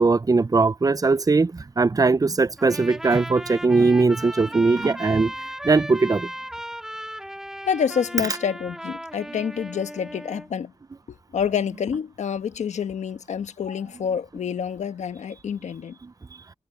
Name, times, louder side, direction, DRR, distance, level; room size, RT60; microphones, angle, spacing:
voice 1, 0.0-1.5 1.8-5.3 5.6-6.3, right 3 dB, 30° right, 0.6 m, -19 dB
Trumpet, 2.6-10.5, equal, 5° right, 3.2 m, -36 dB
voice 2, 7.6-10.7 11.1-16.0, left 7 dB, 90° left, 1.3 m, -28 dB
cardioid pair, 50°, 12 cm